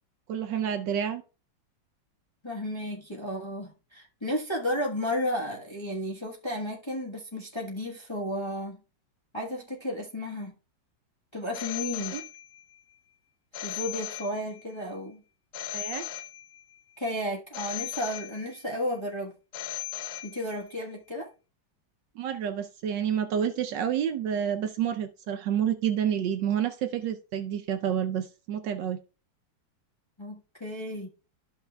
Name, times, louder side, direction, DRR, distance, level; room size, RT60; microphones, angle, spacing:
voice 1, 0.3-1.2 12.1-12.2 15.7-16.0 22.2-29.0, right 9 dB, 70° right, 1.2 m, -29 dB
voice 2, 2.4-8.8 9.3-10.5 11.3-12.2 13.6-15.2 17.0-19.3 20.2-21.3 30.2-31.1, left 1 dB, 20° left, 1.0 m, -33 dB
Telephone, 11.5-12.8 13.5-14.8 15.5-16.8 17.5-18.8 19.5-20.8, left 14 dB, 65° left, 1.0 m, -38 dB
13.0 x 5.6 x 2.2 m
omnidirectional pair, 2.2 m